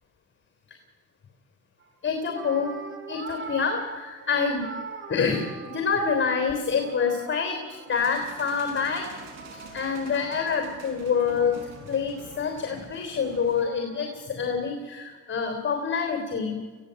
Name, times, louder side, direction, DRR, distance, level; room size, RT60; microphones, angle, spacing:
sound 1, 1.8-1.9 2.3-6.3 6.7-8.4 8.8-14.2, right 4 dB, 45° right, 4.1 m, -43 dB
voice 1, 2.0-2.8 3.1-4.7 5.1-7.6 7.9-9.1 9.7-16.6, left 6 dB, 40° left, 4 dB, 3.4 m, -27 dB
sound 2, 7.9-13.6, right 5 dB, 90° right, 5.7 m, -47 dB
21.0 x 16.0 x 8.2 m, 1.5 s
cardioid pair, 90°, 30 cm